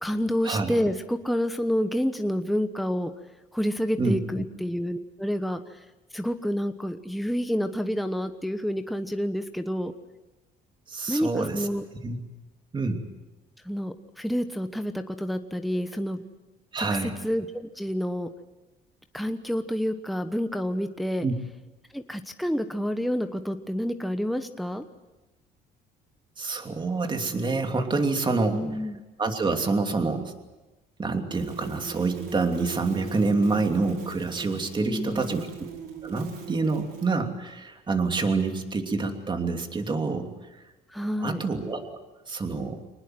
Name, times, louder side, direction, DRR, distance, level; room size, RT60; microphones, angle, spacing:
voice 1, 0.0-3.1 3.5-5.8 6.1-9.9 11.1-11.8 13.6-16.2 16.8-18.3 19.1-21.3 21.9-24.8 28.5-29.0 34.8-35.4 40.9-41.4, equal, ahead, 7 dB, 1.1 m, -29 dB
voice 2, 10.9-11.7 12.0-12.2 12.7-13.0 16.7-17.1 21.2-21.3 26.4-28.6 29.2-30.3 31.0-35.5 36.0-40.6 41.2-42.0 42.3-42.8, right 3 dB, 30° right, 5 dB, 2.9 m, -27 dB
sound 1, 31.3-37.1, right 5 dB, 70° right, 4.6 m, -41 dB
24.5 x 20.0 x 7.8 m, 1.1 s
cardioid pair, 110°, 17 cm